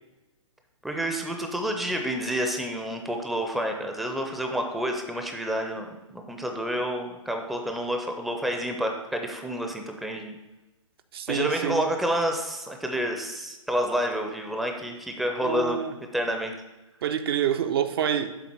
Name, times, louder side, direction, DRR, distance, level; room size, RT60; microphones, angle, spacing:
voice 1, 0.8-10.4 11.3-15.8 16.1-16.5, equal, ahead, 3 dB, 0.5 m, -29 dB
voice 2, 11.1-11.8 15.4-15.9 17.0-18.3, right 9 dB, 45° right, 8 dB, 0.6 m, -27 dB
7.3 x 3.9 x 6.1 m, 1.1 s
figure-of-eight pair, 120°, 17 cm